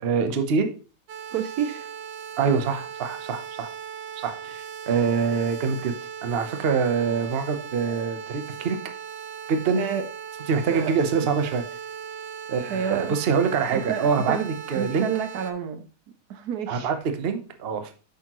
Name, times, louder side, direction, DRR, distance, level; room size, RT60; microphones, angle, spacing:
voice 1, 0.0-0.7 2.4-3.7 4.2-5.9 6.2-8.8 9.5-9.8 10.5-11.6 12.5-15.1 16.7-17.9, right 5 dB, 45° right, 7 dB, 0.9 m, -25 dB
sound 1, 1.1-15.5, right 7 dB, 90° right, 1.5 m, -38 dB
voice 2, 1.3-1.9 9.7-10.1 10.7-11.3 12.7-13.2 13.7-14.4 14.7-15.9 16.3-16.9, right 8 dB, 70° right, 9 dB, 1.2 m, -29 dB
8.3 x 6.4 x 3.0 m, 0.36 s
omnidirectional pair, 1.8 m